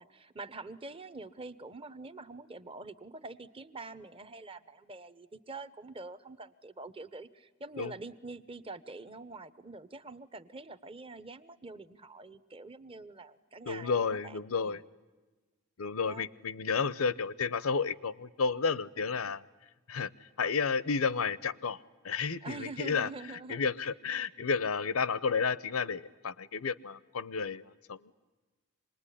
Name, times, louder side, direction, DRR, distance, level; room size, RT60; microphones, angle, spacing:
voice 1, 0.0-14.8 16.1-16.3 22.4-23.7, right 3 dB, 25° right, 14 dB, 0.8 m, -45 dB
voice 2, 13.7-14.8 15.8-19.4 19.9-23.1 23.5-28.1, left 5 dB, 85° left, 18 dB, 0.7 m, -32 dB
26.5 x 20.5 x 10.0 m, 1.3 s
head